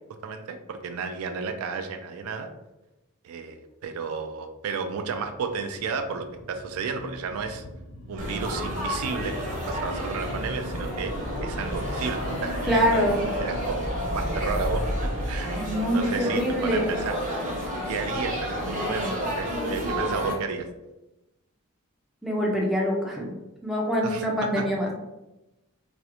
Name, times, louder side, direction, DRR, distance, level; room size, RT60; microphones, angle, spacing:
voice 1, 0.2-2.5 3.2-7.6 8.1-11.1 11.4-13.0 13.4-15.6 15.9-17.2 17.8-20.7 24.0-24.7, right 5 dB, 85° right, 6 dB, 0.3 m, -32 dB
sound 1, 5.2-18.1 18.4-18.5 18.7-18.8 19.0-19.1, equal, 90° left, 0.7 m, -35 dB
Laughter / Chatter / Crowd, 8.2-20.3, equal, 40° right, 0.6 m, -31 dB
voice 2, 12.7-13.2 15.5-17.0 22.2-23.3 23.6-24.9, equal, ahead, -2 dB, 0.3 m, -25 dB
2.4 x 2.0 x 2.8 m, 0.98 s
head